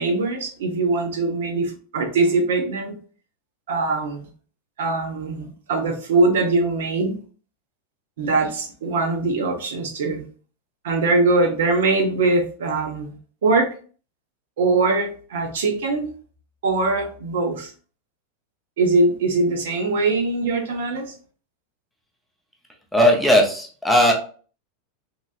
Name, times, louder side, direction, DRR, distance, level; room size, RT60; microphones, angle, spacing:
voice 1, 0.0-3.0 3.7-4.3 4.8-7.2 8.2-10.2 10.8-13.1 13.4-13.7 14.6-16.1 16.6-17.7 18.8-21.1, right 3 dB, 80° right, 4 dB, 0.8 m, -22 dB
voice 2, 22.9-24.1, equal, ahead, 0 dB, 0.4 m, -17 dB
2.9 x 2.6 x 2.3 m, 0.40 s
supercardioid pair, 170°, 0 cm